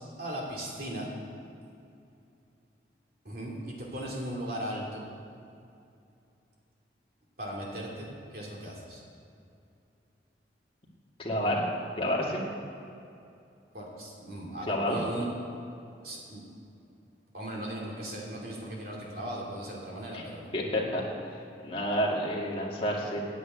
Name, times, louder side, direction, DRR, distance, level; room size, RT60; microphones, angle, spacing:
voice 1, 0.2-1.1 3.2-5.0 7.4-9.0 13.7-15.3 16.0-16.4 17.3-20.5, right 1 dB, 55° right, -3 dB, 2.8 m, -37 dB
voice 2, 11.2-11.6 12.0-12.4 14.6-15.0 20.1-20.2 20.5-21.0 21.3-23.2, equal, 30° left, -3 dB, 2.0 m, -29 dB
9.6 x 8.5 x 8.9 m, 2.6 s
head